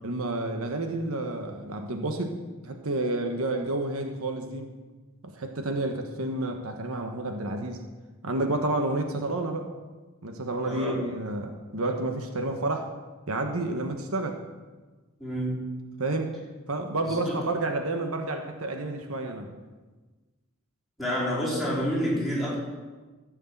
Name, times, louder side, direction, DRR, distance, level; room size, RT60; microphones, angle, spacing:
voice 1, 0.0-2.3 2.6-4.7 5.2-7.8 8.2-9.7 10.2-12.9 13.3-14.4 16.0-16.3 16.7-19.5, right 2 dB, 80° right, 5 dB, 1.3 m, -30 dB
voice 2, 10.6-11.0 15.2-15.6 17.0-17.4 21.0-22.6, equal, ahead, -7 dB, 4.7 m, -28 dB
15.0 x 6.6 x 8.0 m, 1.3 s
head